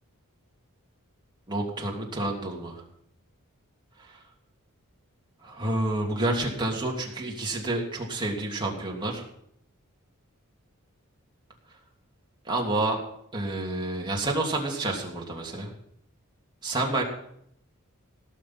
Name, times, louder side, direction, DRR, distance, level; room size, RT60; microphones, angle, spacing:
voice 1, 1.5-2.8 4.1-4.2 5.4-9.2 12.4-13.0 13.3-15.7 16.6-17.0, right 2 dB, 20° right, -1 dB, 3.0 m, -29 dB
18.0 x 6.7 x 7.9 m, 0.71 s
head